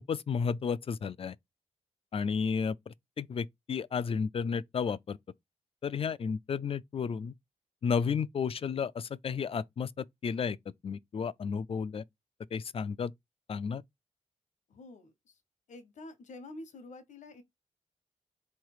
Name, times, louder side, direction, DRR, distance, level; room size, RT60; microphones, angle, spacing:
voice 1, 0.0-1.4 2.1-5.2 5.8-7.3 7.8-10.6 10.8-12.0 12.5-13.1 13.5-13.8, left 6 dB, 50° left, 0.4 m, -32 dB
voice 2, 14.7-15.4 15.7-17.4, left 2 dB, 80° left, 1.1 m, -48 dB
3.5 x 3.2 x 4.7 m
cardioid pair, 60°, 12 cm